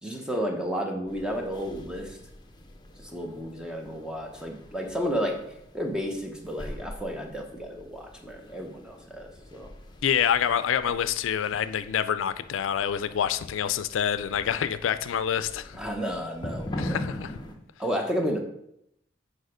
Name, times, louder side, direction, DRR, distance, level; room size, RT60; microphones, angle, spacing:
voice 1, 0.0-2.2 3.0-9.7 15.7-17.0 17.8-18.4, equal, 5° right, 2 dB, 0.9 m, -32 dB
sound 1, 1.1-17.6, left 1 dB, 25° left, 0.8 m, -43 dB
voice 2, 10.0-15.8 16.8-17.4, left 8 dB, 90° left, 13 dB, 0.4 m, -27 dB
6.4 x 4.9 x 5.0 m, 0.79 s
head